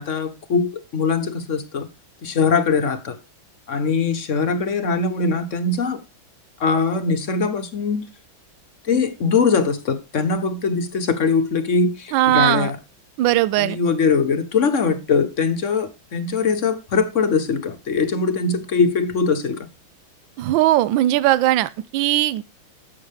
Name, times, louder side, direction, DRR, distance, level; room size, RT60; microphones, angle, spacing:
voice 1, 0.0-1.9 2.2-3.2 3.7-6.0 6.6-8.0 8.9-12.8 13.5-19.7, left 4 dB, 50° left, 1.1 m, -21 dB
voice 2, 12.1-12.7 13.2-13.8 20.4-22.4, right 14 dB, 75° right, 1.3 m, -19 dB
11.0 x 8.0 x 3.4 m
omnidirectional pair, 2.1 m